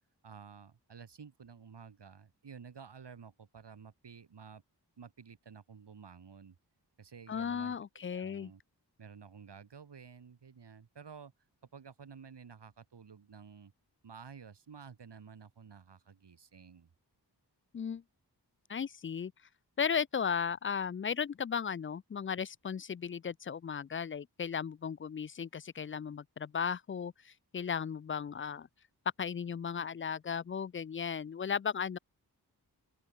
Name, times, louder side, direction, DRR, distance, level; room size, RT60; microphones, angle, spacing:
voice 1, 0.2-4.6 5.0-6.6 7.0-8.6 9.0-11.3 11.7-13.7 14.0-16.9, right 6 dB, 85° right, 2.9 m, -52 dB
voice 2, 7.3-8.5 17.7-18.0 18.7-19.3 19.8-28.7 29.2-32.0, left 7 dB, 30° left, 0.4 m, -36 dB
open air
wide cardioid pair, 60°, 40 cm